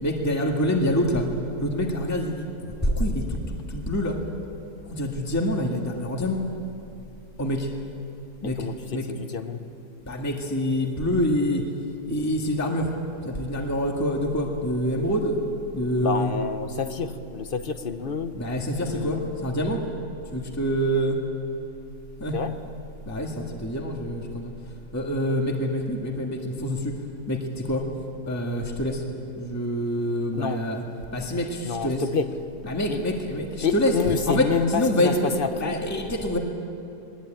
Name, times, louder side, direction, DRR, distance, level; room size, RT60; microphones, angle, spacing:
voice 1, 0.0-1.3 1.6-3.4 3.7-4.2 4.9-6.4 7.4-7.7 8.4-8.6 8.9-9.3 10.1-11.6 12.1-12.9 13.2-15.4 15.7-16.3 18.3-19.8 20.3-21.2 22.2-22.4 23.1-24.5 24.9-27.0 27.3-27.9 28.3-29.0 29.4-30.8 31.1-32.0 32.6-33.9 34.3-36.4, equal, 10° left, 1 dB, 1.7 m, -26 dB
voice 2, 8.4-9.6 16.0-18.3 18.9-19.3 22.3-22.6 30.3-30.6 31.6-32.4 32.9-33.0 33.6-35.8, left 5 dB, 40° left, 9 dB, 1.0 m, -28 dB
20.5 x 20.5 x 8.9 m, 2.6 s
omnidirectional pair, 1.7 m